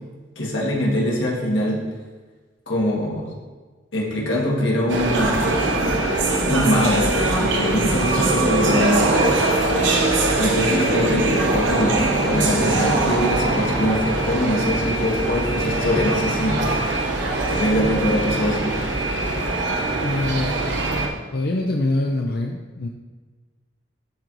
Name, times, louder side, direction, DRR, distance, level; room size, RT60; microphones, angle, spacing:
voice 1, 0.4-1.8 2.7-3.3 3.9-5.5 6.5-9.4 10.4-16.7 17.5-18.7, left 1 dB, 80° left, -3 dB, 1.7 m, -23 dB
sound 1, 4.9-21.1, right 2 dB, 80° right, 1.0 m, -22 dB
voice 2, 20.0-20.5 21.3-22.9, left 2 dB, 55° left, 1 dB, 0.5 m, -24 dB
11.0 x 3.9 x 3.1 m, 1.4 s
head